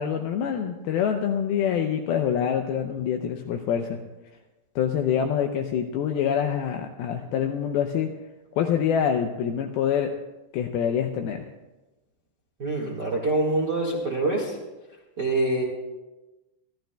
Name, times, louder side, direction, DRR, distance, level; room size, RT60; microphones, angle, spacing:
voice 1, 0.0-4.0 4.8-8.1 8.6-10.1 10.5-11.5, left 8 dB, 85° left, 5 dB, 2.2 m, -25 dB
voice 2, 12.6-14.6 15.2-15.6, right 2 dB, 85° right, -2 dB, 0.9 m, -25 dB
28.5 x 13.0 x 2.3 m, 1.1 s
omnidirectional pair, 5.0 m